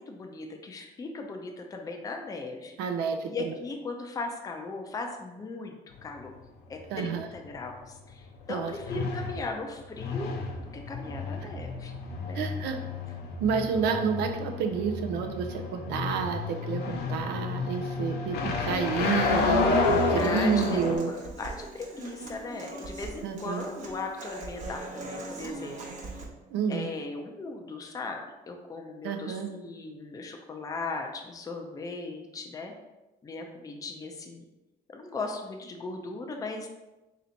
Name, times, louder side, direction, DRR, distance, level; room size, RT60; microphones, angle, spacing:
voice 1, 0.0-2.8 3.3-5.7 6.0-6.3 6.7-10.3 10.7-11.9 12.2-12.5 20.2-26.2 26.7-28.2 28.5-32.7 33.2-34.4 34.9-36.7, left 3 dB, 20° left, 3 dB, 0.5 m, -38 dB
voice 2, 2.8-3.5 6.9-7.3 8.5-9.1 12.3-12.8 13.4-21.1 23.2-23.7 26.5-26.9 29.0-29.5, right 6 dB, 85° right, 5 dB, 0.5 m, -30 dB
sound 1, 5.9-21.0, left 3 dB, 75° left, 0.7 m, -30 dB
Human voice / Acoustic guitar, 19.8-26.2, right 2 dB, 45° right, 0.8 m, -41 dB
3.2 x 2.9 x 3.9 m, 1.1 s
cardioid pair, 110°, 17 cm